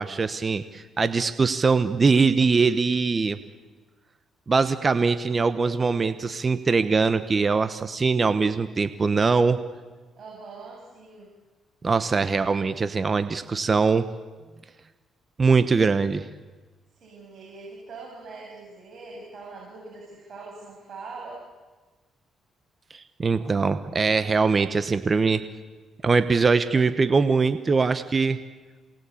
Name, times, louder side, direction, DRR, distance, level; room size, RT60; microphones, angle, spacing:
voice 1, 0.0-3.4 4.5-9.6 11.8-14.1 15.4-16.2 22.9-25.4 26.0-28.4, right 4 dB, 35° right, 11 dB, 1.2 m, -22 dB
voice 2, 10.1-11.3 16.9-21.4, right 3 dB, 55° right, -3 dB, 7.4 m, -42 dB
28.0 x 20.0 x 8.7 m, 1.3 s
cardioid pair, 90°, 0 cm